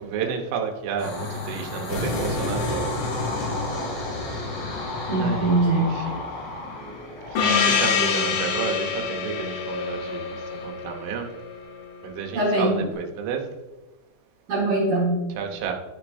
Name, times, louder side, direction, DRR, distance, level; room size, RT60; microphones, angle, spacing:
voice 1, 0.0-2.9 5.2-5.4 5.7-6.2 7.3-10.4 10.6-11.3 12.0-13.4 15.4-15.7, right 7 dB, 80° right, 3 dB, 3.3 m, -31 dB
sound 1, 1.0-10.6, left 2 dB, 65° left, 4.4 m, -32 dB
voice 2, 5.1-6.0 12.3-12.9 14.5-15.2, right 2 dB, 55° right, -7 dB, 2.5 m, -22 dB
Gong, 7.4-11.7, left 6 dB, 80° left, 3.3 m, -25 dB
13.0 x 6.5 x 2.6 m, 1.1 s
omnidirectional pair, 5.6 m